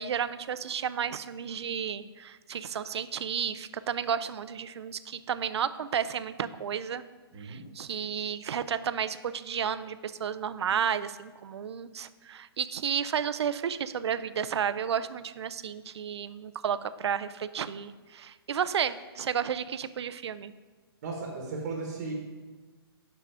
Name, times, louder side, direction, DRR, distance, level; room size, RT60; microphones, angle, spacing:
voice 1, 0.0-7.0 7.4-20.5, right 8 dB, 85° right, 14 dB, 0.4 m, -32 dB
voice 2, 7.3-7.6 21.0-22.1, right 3 dB, 35° right, 0 dB, 1.1 m, -36 dB
6.2 x 5.6 x 4.8 m, 1.4 s
hypercardioid pair, 170°, 14 cm